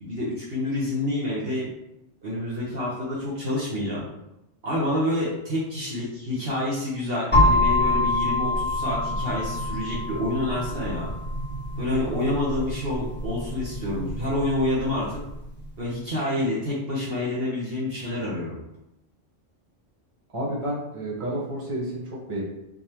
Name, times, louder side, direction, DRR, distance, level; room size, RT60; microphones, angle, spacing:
voice 1, 0.0-1.7 2.2-4.1 4.6-11.1 11.8-15.2 15.8-18.6, left 1 dB, 50° right, -6 dB, 1.2 m, -28 dB
sound 1, 7.3-15.1, left 1 dB, 10° left, 1.5 m, -25 dB
voice 2, 20.3-22.0 22.3-22.4, right 1 dB, 25° right, -6 dB, 1.2 m, -30 dB
4.4 x 3.4 x 2.9 m, 0.86 s
omnidirectional pair, 1.3 m